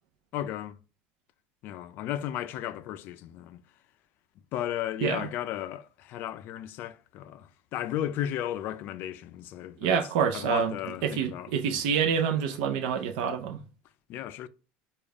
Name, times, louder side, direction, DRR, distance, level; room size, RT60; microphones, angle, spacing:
voice 1, 0.3-0.8 1.6-3.6 4.5-9.9 10.3-11.5 14.1-14.5, left 11 dB, 55° left, 0.4 m, -34 dB
voice 2, 9.8-10.7 11.0-13.6, right 7 dB, 80° right, 0.5 m, -27 dB
5.2 x 2.3 x 3.5 m
cardioid pair, 135°, 4 cm